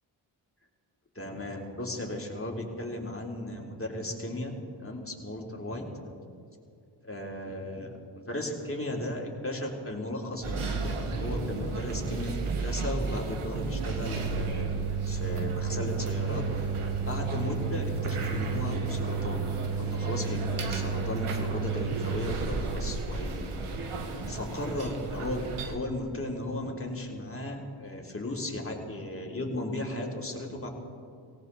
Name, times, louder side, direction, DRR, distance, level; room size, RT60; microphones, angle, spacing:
voice 1, 1.2-4.5 4.8-5.9 7.0-7.9 8.2-14.7 15.1-16.5 16.8-19.5 19.8-23.5 24.3-30.7, left 1 dB, 25° left, -1 dB, 3.7 m, -35 dB
sound 1, 10.4-25.8, right 4 dB, 80° right, 1.9 m, -32 dB
18.0 x 18.0 x 4.2 m, 2.4 s
cardioid pair, 50°, 50 cm